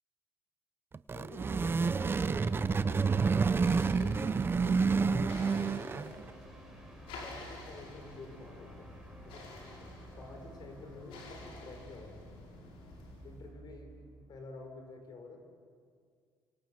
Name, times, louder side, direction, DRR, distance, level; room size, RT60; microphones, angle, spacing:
sound 1, 0.9-6.2, right 5 dB, 25° right, 0.7 m, -29 dB
voice 1, 1.1-3.2 3.7-6.2 7.2-9.6 10.2-12.2 13.2-15.4, left 3 dB, 50° left, 4 dB, 5.6 m, -49 dB
sound 2, 2.2-13.4, left 2 dB, 90° left, 6.6 m, -51 dB
sound 3, 2.4-14.4, right 2 dB, 5° right, 4.7 m, -54 dB
30.0 x 25.5 x 7.9 m, 2.1 s
cardioid pair, 105°, 9 cm